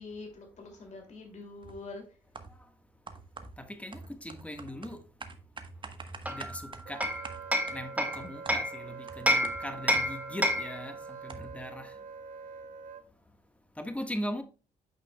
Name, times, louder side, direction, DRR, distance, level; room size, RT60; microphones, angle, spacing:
voice 1, 0.0-2.0, left 3 dB, 50° left, 2.6 m, -44 dB
sound 1, 1.6-1.9 2.3-2.7 3.1-10.7 10.9-11.0 11.3-11.7, right 3 dB, 35° right, 1.1 m, -46 dB
voice 2, 3.6-5.0 6.3-7.0 7.7-11.9 13.8-14.4, equal, 10° left, 1.5 m, -39 dB
Hammer, 6.3-8.8 9.3-10.8, equal, 10° right, 1.6 m, -29 dB
Wind instrument woodwind instrument, 6.9-13.0, right 6 dB, 65° right, 0.9 m, -45 dB
8.8 x 5.8 x 2.3 m
supercardioid pair, 55°, 15 cm